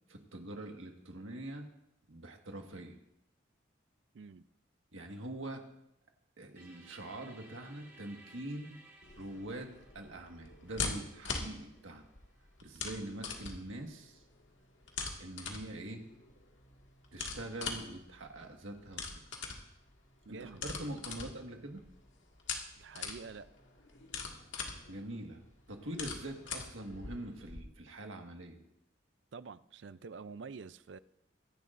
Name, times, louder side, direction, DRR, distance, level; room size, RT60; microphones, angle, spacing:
voice 1, 0.1-1.7 2.1-3.0 4.9-5.6 6.4-8.8 9.2-12.1 12.6-14.2 15.2-16.1 17.1-19.0 20.3-21.8 24.9-28.6, right 1 dB, 90° right, 3 dB, 1.7 m, -44 dB
sound 1, 6.5-12.5, right 2 dB, 15° right, 1.8 m, -60 dB
sound 2, 9.0-27.6, left 4 dB, 70° left, 1.9 m, -43 dB
voice 2, 20.2-20.6 22.8-23.5 29.3-31.0, right 5 dB, 70° right, 16 dB, 0.5 m, -47 dB
23.5 x 11.0 x 2.6 m, 0.81 s
head